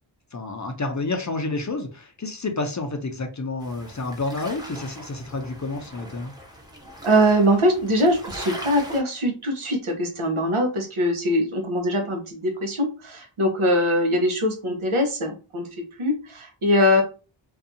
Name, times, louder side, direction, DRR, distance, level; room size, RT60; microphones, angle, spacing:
voice 1, 0.3-6.3, left 3 dB, 35° left, 0.5 m, -29 dB
sound 1, 3.6-9.0, equal, 10° right, 0.8 m, -40 dB
voice 2, 7.0-15.7 16.0-17.0, equal, 75° right, 0.9 m, -22 dB
2.6 x 2.3 x 2.6 m
wide cardioid pair, 40°, 50 cm